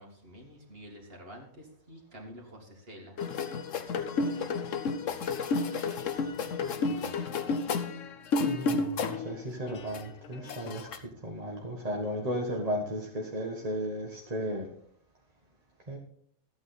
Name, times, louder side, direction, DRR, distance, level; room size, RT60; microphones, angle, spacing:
voice 1, 0.0-3.2 6.4-7.5, equal, 45° right, 0 dB, 2.5 m, -49 dB
sound 1, 3.2-9.3 9.7-11.0, left 4 dB, 65° left, 1.2 m, -31 dB
voice 2, 8.4-14.7 15.9-16.0, equal, 30° right, -1 dB, 1.5 m, -35 dB
14.0 x 8.9 x 4.1 m, 0.62 s
omnidirectional pair, 1.5 m